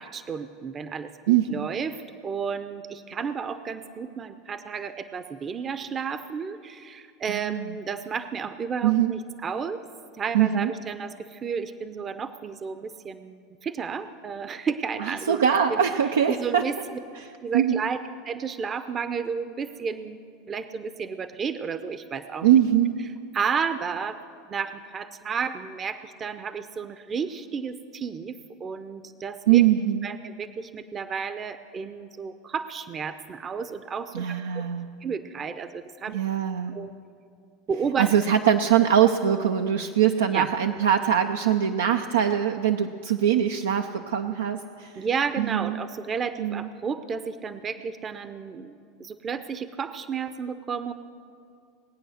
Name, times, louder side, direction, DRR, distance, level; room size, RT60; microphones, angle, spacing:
voice 1, 0.0-9.8 10.2-15.4 15.7-15.8 16.3-16.8 17.4-20.2 20.5-22.6 23.3-24.2 24.5-29.6 30.0-34.4 35.0-36.2 36.7-36.9 37.7-38.1 40.3-40.5 45.0-50.9, right 6 dB, 30° right, 11 dB, 0.7 m, -32 dB
voice 2, 1.3-1.7 7.3-7.7 8.8-9.1 10.3-10.7 15.0-16.6 17.5-17.8 22.4-23.0 29.5-30.1 34.1-34.9 36.1-36.8 38.0-45.0 45.4-45.8 46.4-46.7, right 9 dB, 85° right, 5 dB, 0.5 m, -22 dB
20.0 x 8.9 x 6.5 m, 2.4 s
hypercardioid pair, 90°, 0 cm